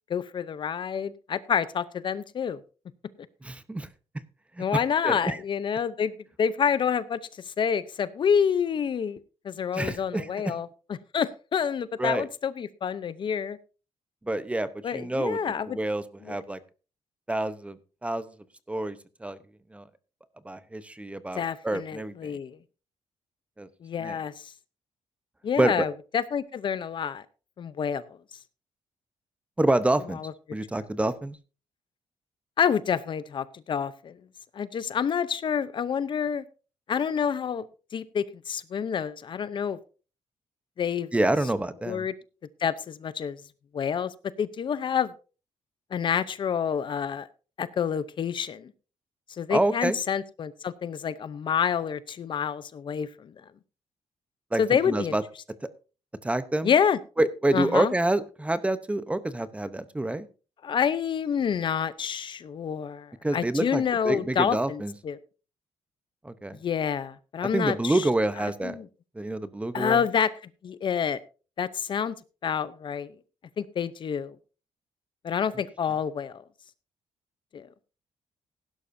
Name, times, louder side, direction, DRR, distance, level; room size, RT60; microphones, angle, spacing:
voice 1, 0.1-2.6 4.6-6.1 6.4-7.2 7.6-9.2 9.4-10.7 11.1-13.6 14.8-15.8 16.3-16.4 21.3-22.6 23.8-24.5 25.4-27.2 27.6-28.2 30.2-30.3 32.6-34.2 34.5-36.4 36.9-37.6 37.9-39.8 40.8-41.1 41.9-42.1 42.6-43.4 43.7-45.1 45.9-47.3 47.6-48.7 49.4-53.3 54.6-55.1 56.6-57.0 57.5-57.9 60.6-65.2 66.6-68.0 68.6-68.9 69.7-70.3 70.6-71.2 71.6-72.1 72.4-73.1 73.6-74.3 75.2-76.4 77.5-77.7, left 7 dB, 45° left, 16 dB, 0.7 m, -28 dB
voice 2, 3.4-3.9 4.6-5.4 9.7-10.5 12.0-12.3 14.2-15.4 15.7-16.6 17.3-18.3 18.7-19.4 19.7-19.9 20.4-22.4 23.6-23.7 24.0-24.2 25.6-25.9 29.6-30.2 30.5-31.4 41.1-42.1 49.5-50.0 54.5-55.2 55.6-55.7 56.2-56.7 57.2-60.3 63.2-64.9 66.2-66.6 67.5-68.8 69.1-70.0, right 2 dB, 10° right, 13 dB, 0.8 m, -27 dB
16.5 x 11.5 x 2.7 m, 0.34 s
cardioid pair, 130°, 11 cm